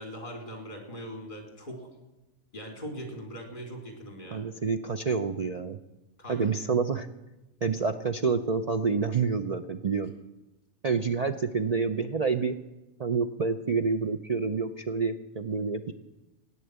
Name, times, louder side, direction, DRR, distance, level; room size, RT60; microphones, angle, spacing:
voice 1, 0.0-1.8 2.5-4.4 6.2-6.5, equal, 35° left, 2 dB, 3.7 m, -40 dB
voice 2, 4.3-5.8 6.3-7.1 7.6-10.1 10.8-12.6 13.0-15.9, right 5 dB, 80° right, 7 dB, 0.3 m, -28 dB
15.5 x 9.7 x 8.1 m, 1.0 s
omnidirectional pair, 1.5 m